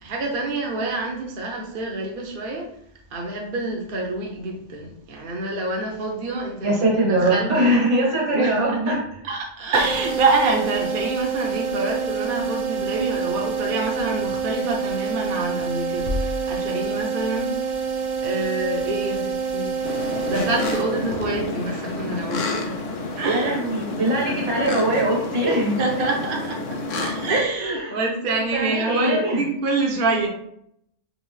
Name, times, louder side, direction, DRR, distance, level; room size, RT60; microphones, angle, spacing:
voice 1, 0.0-2.7 3.1-6.7 7.0-7.5 8.3-9.0 9.2-17.5 18.2-19.7 20.3-22.9 23.2-23.6 24.3-24.5 25.4-30.3, right 2 dB, 50° right, 0 dB, 0.8 m, -26 dB
voice 2, 6.6-9.0 23.3-25.8 27.6-27.9 28.5-29.4, right 1 dB, 70° right, -3 dB, 1.7 m, -22 dB
sound 1, 9.7-21.4, right 5 dB, 85° right, 1.2 m, -27 dB
sound 2, 19.8-27.4, left 3 dB, 85° left, 1.1 m, -30 dB
5.3 x 2.9 x 3.1 m, 0.73 s
omnidirectional pair, 1.2 m